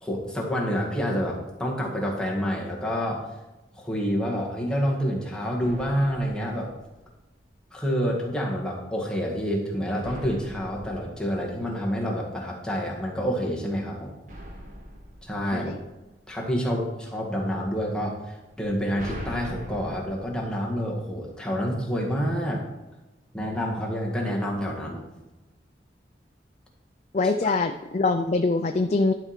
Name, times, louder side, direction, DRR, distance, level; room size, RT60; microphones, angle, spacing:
voice 1, 0.0-3.2 3.8-6.7 7.7-14.1 15.2-15.7 16.3-22.6 23.3-25.0 27.4-27.6, equal, 5° left, -3 dB, 1.6 m, -28 dB
sound 1, 5.6-7.5 10.0-12.4 14.3-16.5 18.5-21.6, equal, 45° right, 1.5 m, -43 dB
voice 2, 27.1-29.1, left 3 dB, 40° left, 6 dB, 0.4 m, -23 dB
11.0 x 4.8 x 5.8 m, 1.1 s
head